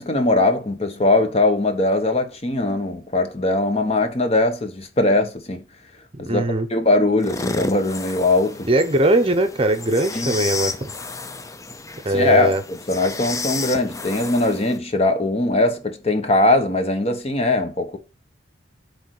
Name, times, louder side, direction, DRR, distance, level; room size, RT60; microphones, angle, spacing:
voice 1, 0.0-5.6 6.2-6.4 6.7-8.7 10.1-10.3 12.1-18.0, left 2 dB, 35° left, 1.1 m, -20 dB
voice 2, 6.1-6.7 8.6-10.9 12.0-12.6, right 1 dB, 30° right, 0.8 m, -20 dB
sound 1, 7.2-14.8, left 3 dB, 15° left, 0.5 m, -32 dB
8.2 x 3.3 x 6.4 m
head